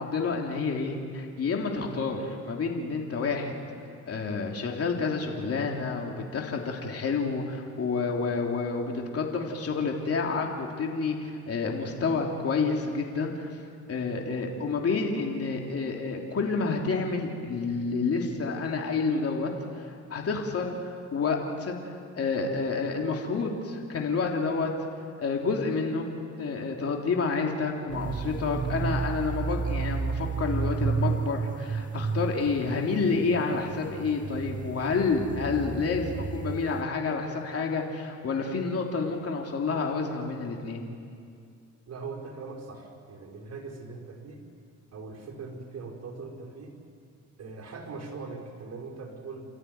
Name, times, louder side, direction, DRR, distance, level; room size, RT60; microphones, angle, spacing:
voice 1, 0.0-3.5 4.1-13.5 13.9-21.8 22.2-24.7 25.2-26.1 26.4-40.8, left 4 dB, 50° left, 1 dB, 3.2 m, -29 dB
sound 1, 27.9-36.8, right 5 dB, 25° right, 0.8 m, -32 dB
voice 2, 41.9-44.4 44.9-46.8 47.4-49.4, right 4 dB, 55° right, 0 dB, 5.4 m, -41 dB
29.0 x 14.0 x 9.6 m, 2.3 s
cardioid pair, 90°, 30 cm